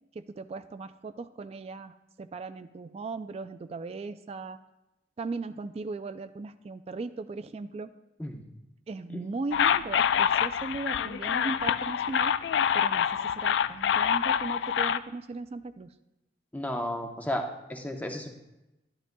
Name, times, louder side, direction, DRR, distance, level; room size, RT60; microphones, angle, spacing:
voice 1, 0.1-4.6 5.2-7.9 8.9-12.4 12.7-15.9, right 3 dB, 35° right, 10 dB, 0.3 m, -38 dB
sound 1, 9.5-15.0, left 8 dB, 80° left, 0.3 m, -26 dB
voice 2, 16.5-18.3, left 1 dB, 10° left, 3 dB, 0.8 m, -33 dB
12.0 x 11.5 x 2.2 m, 0.95 s
head